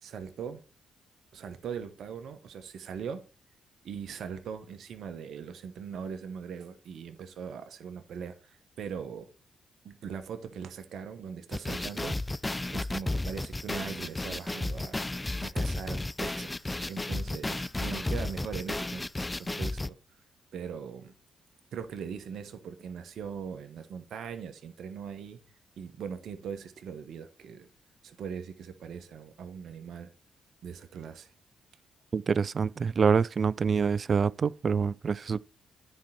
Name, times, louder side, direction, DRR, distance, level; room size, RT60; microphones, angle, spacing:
voice 1, 0.0-0.6 1.3-3.2 3.8-9.3 9.8-12.4 12.7-15.0 15.4-19.1 19.4-20.0 20.5-21.1 21.7-25.4 25.8-27.7 28.0-30.1 30.6-31.3, right 7 dB, 70° right, 1.0 m, -40 dB
sound 1, 11.5-19.9, left 2 dB, 20° left, 0.4 m, -33 dB
voice 2, 32.1-35.5, right 6 dB, 50° right, 0.4 m, -26 dB
9.6 x 4.4 x 5.7 m
supercardioid pair, 50°, 0 cm